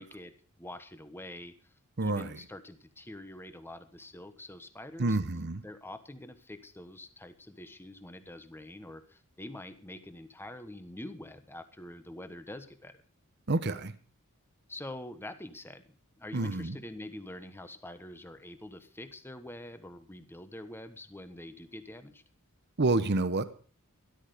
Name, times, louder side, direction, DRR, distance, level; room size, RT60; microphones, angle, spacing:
voice 1, 0.0-1.5 2.0-5.2 5.6-13.0 14.7-15.8 16.2-22.2, left 1 dB, 10° left, 10 dB, 1.2 m, -45 dB
voice 2, 2.0-2.4 5.0-5.6 13.5-13.9 16.3-16.8 22.8-23.4, right 2 dB, 50° right, 12 dB, 1.0 m, -28 dB
13.0 x 13.0 x 5.1 m, 0.39 s
head